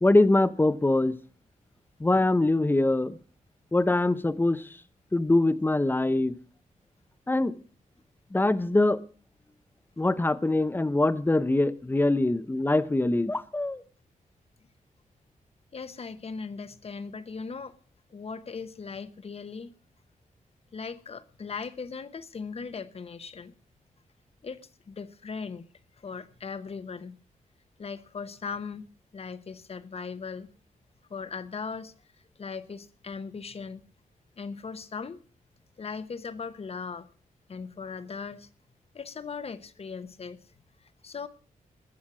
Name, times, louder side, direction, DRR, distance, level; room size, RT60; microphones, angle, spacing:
voice 1, 0.0-1.1 2.0-3.2 3.7-4.6 5.1-6.3 7.3-7.5 8.3-9.0 10.0-13.8, left 2 dB, 15° left, 0.9 m, -23 dB
voice 2, 15.7-17.8 18.1-19.7 20.7-23.5 24.4-24.6 24.9-25.6 26.0-27.2 27.8-28.9 29.1-30.5 31.1-31.9 32.4-33.8 34.4-35.2 35.8-37.1 37.5-38.5 38.9-40.4 41.0-41.3, left 5 dB, 45° left, 1.1 m, -38 dB
20.5 x 7.2 x 6.1 m
wide cardioid pair, 110°, 14 cm